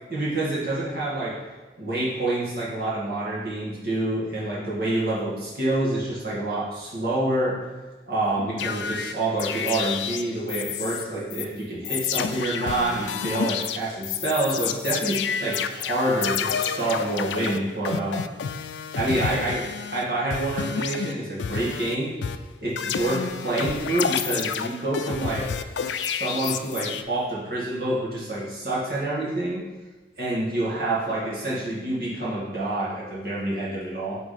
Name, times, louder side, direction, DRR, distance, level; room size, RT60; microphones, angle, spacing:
voice 1, 0.1-1.4 1.8-7.7 8.1-18.3 19.0-22.1 22.6-25.5 26.1-29.7 30.2-34.2, right 2 dB, 60° right, -7 dB, 2.1 m, -27 dB
sound 1, 8.6-11.0 11.3-11.4 11.8-20.0 20.3-21.9 22.2-27.0, left 7 dB, 90° left, 0.3 m, -30 dB
6.3 x 3.9 x 5.0 m, 1.2 s
head